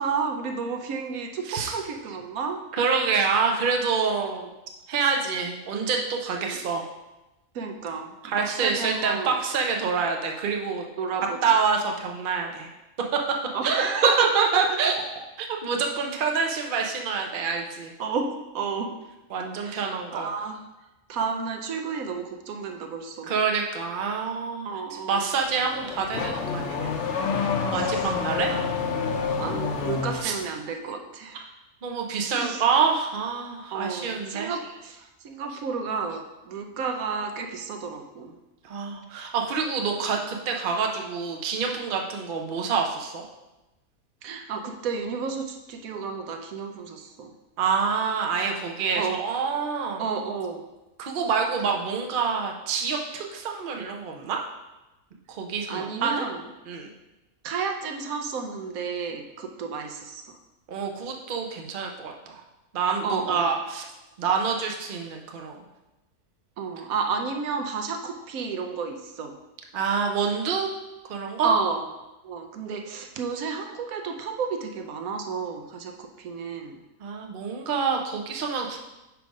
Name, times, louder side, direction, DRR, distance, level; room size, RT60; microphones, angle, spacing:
voice 1, 0.0-2.6 6.4-6.6 7.5-9.3 11.0-11.6 13.5-15.2 18.0-18.9 19.5-20.6 21.1-23.3 24.6-25.2 27.7-28.1 28.5-28.7 29.4-31.5 32.3-32.7 33.7-38.3 44.2-47.3 49.0-49.2 50.0-50.6 55.7-56.4 57.4-60.4 63.0-63.5 66.6-69.4 71.4-71.9 72.2-76.8, right 5 dB, 75° right, 3 dB, 1.1 m, -31 dB
voice 2, 2.7-4.5 4.9-6.9 8.2-10.8 11.4-12.7 13.1-13.2 13.6-14.9 15.5-17.9 19.3-20.3 23.2-24.7 25.1-26.9 27.3-28.5 30.1-30.3 31.8-34.5 38.6-43.2 47.6-50.0 51.0-54.4 55.3-56.3 56.7-56.9 60.7-62.4 62.7-63.9 64.2-65.6 69.7-70.7 71.1-71.5 77.0-78.8, right 5 dB, 45° right, 2 dB, 0.7 m, -27 dB
Car / Accelerating revving vroom, 25.4-30.4, left 5 dB, 60° left, 0.9 m, -28 dB
4.9 x 4.6 x 5.2 m, 0.99 s
omnidirectional pair, 1.5 m